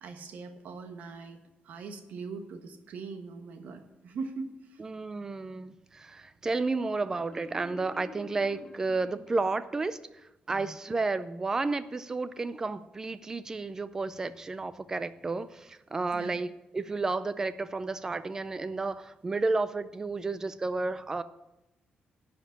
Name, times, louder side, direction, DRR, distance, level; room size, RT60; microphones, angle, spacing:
voice 1, 0.0-4.8 10.5-10.7 16.1-16.4, right 4 dB, 65° right, 7 dB, 1.3 m, -41 dB
voice 2, 4.8-10.0 10.5-21.2, right 3 dB, 20° right, 14 dB, 0.4 m, -32 dB
Marimba xylophone, 7.2-9.9, left 2 dB, 25° left, 0.9 m, -49 dB
11.0 x 5.2 x 8.5 m, 0.94 s
cardioid pair, 165°, 3 cm